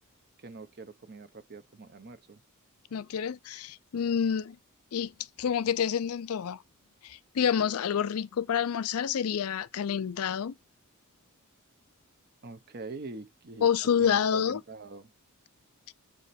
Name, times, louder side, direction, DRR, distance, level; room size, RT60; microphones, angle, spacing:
voice 1, 0.4-2.4 12.4-13.7 14.0-15.1, right 3 dB, 45° right, 0.8 m, -44 dB
voice 2, 2.9-4.6 4.9-5.1 5.4-6.6 7.0-10.5 13.6-14.6 15.9-16.0, left 8 dB, 75° left, 0.4 m, -28 dB
7.6 x 4.9 x 4.2 m
head